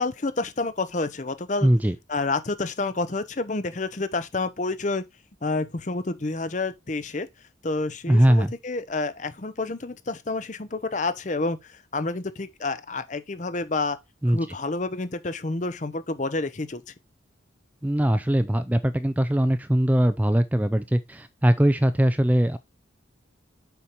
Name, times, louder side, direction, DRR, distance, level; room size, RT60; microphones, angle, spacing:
voice 1, 0.0-1.7 2.1-5.0 5.4-7.3 7.6-14.0 14.2-16.8, left 3 dB, 40° left, 0.7 m, -29 dB
voice 2, 1.6-2.0 8.1-8.5 14.2-14.4 17.8-22.6, right 1 dB, 10° right, 0.4 m, -21 dB
7.0 x 5.1 x 4.5 m
head